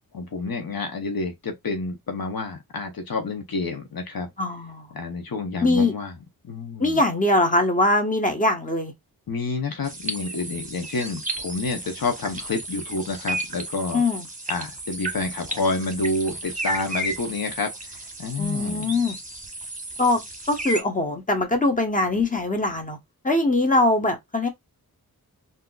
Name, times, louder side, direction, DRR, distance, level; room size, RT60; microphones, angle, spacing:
voice 1, 0.1-4.3 4.9-6.1 6.4-7.0 9.3-14.0 14.5-17.7 18.2-19.0, left 3 dB, 70° left, 0.8 m, -29 dB
voice 2, 4.4-4.9 5.6-5.9 6.8-8.9 13.9-14.3 18.4-19.2 20.0-20.2 20.5-23.0 23.2-24.5, left 2 dB, 20° left, 1.1 m, -22 dB
sound 1, 9.8-20.8, right 1 dB, 20° right, 1.0 m, -33 dB
3.6 x 2.7 x 2.3 m
cardioid pair, 45°, 37 cm